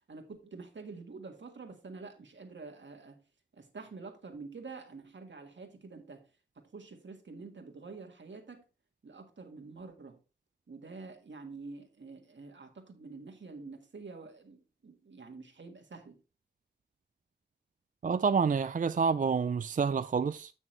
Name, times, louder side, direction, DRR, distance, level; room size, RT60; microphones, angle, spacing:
voice 1, 0.1-3.2 3.5-6.2 6.6-8.6 9.0-10.2 10.7-16.2, right 4 dB, 85° right, 1.7 m, -47 dB
voice 2, 18.0-20.5, right 5 dB, 45° right, 0.4 m, -28 dB
9.0 x 6.2 x 3.2 m
wide cardioid pair, 60°, 18 cm